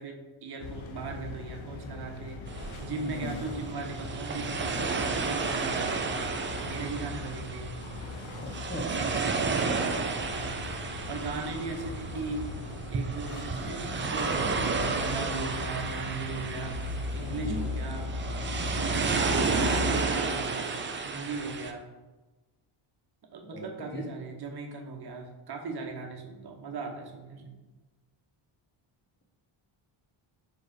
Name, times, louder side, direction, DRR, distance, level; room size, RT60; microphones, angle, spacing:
voice 1, 0.0-6.3 6.6-7.7 9.0-9.8 10.3-10.5 11.1-12.5 12.9-16.7 17.1-18.1 18.7-20.8 21.0-21.9 23.2-27.5, right 4 dB, 50° right, 2 dB, 1.1 m, -38 dB
sound 1, 0.6-20.1, left 3 dB, 70° left, 0.9 m, -38 dB
sound 2, 2.5-21.7, right 4 dB, 25° right, 0.4 m, -32 dB
voice 2, 8.4-9.0 17.3-17.7 23.5-24.0, equal, 20° left, 2 dB, 1.0 m, -38 dB
4.9 x 4.6 x 4.9 m, 1.2 s
wide cardioid pair, 155°, 50 cm